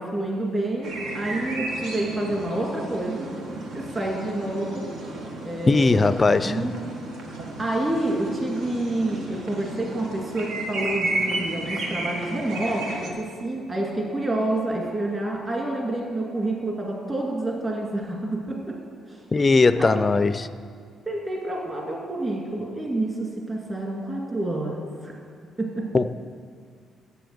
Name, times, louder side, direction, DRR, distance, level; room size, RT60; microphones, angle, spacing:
voice 1, 0.0-3.3 3.7-4.9 5.4-6.7 7.6-18.8 19.1-19.2 19.8-20.0 21.1-25.2 25.6-25.9, right 1 dB, 25° right, -1 dB, 2.1 m, -28 dB
sound 1, 0.8-13.1, right 2 dB, 80° right, 1.4 m, -33 dB
voice 2, 5.7-6.7 19.3-20.5 25.9-26.1, left 3 dB, 30° left, 14 dB, 0.4 m, -19 dB
8.4 x 6.9 x 7.7 m, 2.1 s
cardioid pair, 90°, 0 cm